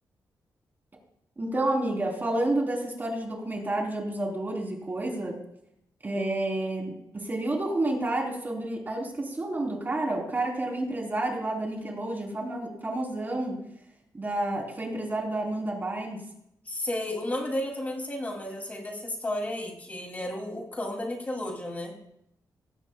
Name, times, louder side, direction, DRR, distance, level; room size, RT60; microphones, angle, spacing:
voice 1, 1.4-5.4 6.0-13.6 14.1-16.2, right 2 dB, 25° right, 0 dB, 3.5 m, -30 dB
voice 2, 16.6-21.9, left 1 dB, 25° left, 1 dB, 2.7 m, -33 dB
18.5 x 15.5 x 2.3 m, 0.77 s
wide cardioid pair, 120°, 7 cm